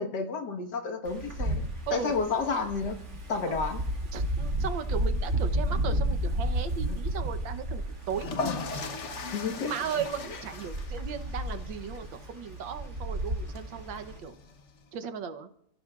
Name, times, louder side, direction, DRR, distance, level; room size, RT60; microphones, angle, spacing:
voice 1, 0.0-1.6 1.9-3.0 3.3-3.8 6.9-7.0 9.3-9.7 10.2-10.4, left 4 dB, 65° left, 5 dB, 2.0 m, -31 dB
Wind, 1.0-14.2, right 1 dB, 40° right, 2.3 m, -32 dB
voice 2, 4.1-8.3 9.6-14.3 14.9-15.5, right 7 dB, 80° right, 9 dB, 1.7 m, -36 dB
sound 1, 8.0-14.8, left 4 dB, 45° left, 1.1 m, -39 dB
29.5 x 17.0 x 2.4 m, 0.72 s
omnidirectional pair, 2.0 m